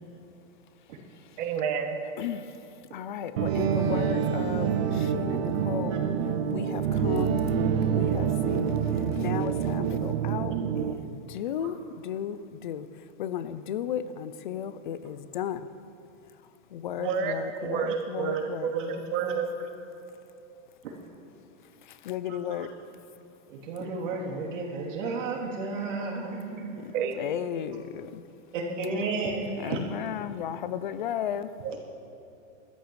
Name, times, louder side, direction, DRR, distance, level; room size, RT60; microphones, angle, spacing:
voice 1, 1.4-2.0 17.0-17.3 17.7-19.5 26.9-27.2 31.6-31.8, right 6 dB, 25° right, 6 dB, 0.9 m, -30 dB
voice 2, 2.2-2.5 2.9-6.1 6.5-7.4 7.9-12.9 13.2-15.7 16.7-18.7 21.9-22.7 26.8-28.2 29.6-31.5, left 9 dB, 40° left, 14 dB, 0.4 m, -35 dB
sound 1, 3.4-10.9, right 7 dB, 50° right, 0.9 m, -27 dB
voice 3, 17.6-18.4 18.7-19.3 20.8-20.9 22.3-22.7 23.5-26.8 28.5-29.8 31.7-31.8, right 3 dB, 80° right, -3 dB, 3.2 m, -33 dB
22.5 x 13.5 x 3.2 m, 2.6 s
supercardioid pair, 170°, 38 cm